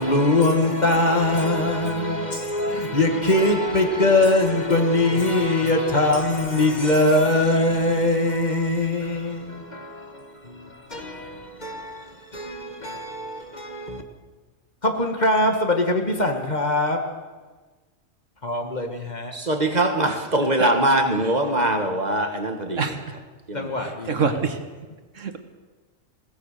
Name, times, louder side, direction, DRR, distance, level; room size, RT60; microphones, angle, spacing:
voice 1, 0.0-14.0 14.8-17.2 18.4-19.3 23.5-24.3, left 2 dB, 35° left, 1.9 m, -22 dB
voice 2, 19.3-22.9 23.5-23.8, right 1 dB, 30° right, 1.8 m, -22 dB
voice 3, 22.8-23.2 23.8-24.6 25.2-25.4, right 5 dB, 70° right, 1.8 m, -26 dB
21.5 x 18.0 x 6.8 m
omnidirectional pair, 1.4 m